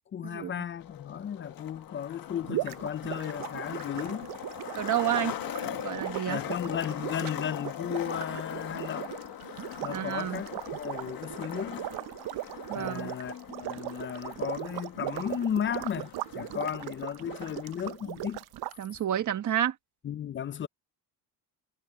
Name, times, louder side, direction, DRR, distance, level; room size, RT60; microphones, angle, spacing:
voice 1, 0.1-4.3 6.3-9.1 9.8-11.9 12.7-18.4 20.0-20.7, left 9 dB, 30° left, 0.4 m, -35 dB
Skateboard, 0.7-17.7, left 11 dB, 55° left, 1.6 m, -41 dB
sound 1, 2.4-18.8, right 16 dB, 70° right, 0.6 m, -39 dB
voice 2, 4.7-5.3 5.6-6.4 9.9-10.4 12.7-13.1 18.8-19.7, right 11 dB, 50° right, 1.5 m, -30 dB
cardioid pair, 165°, 40 cm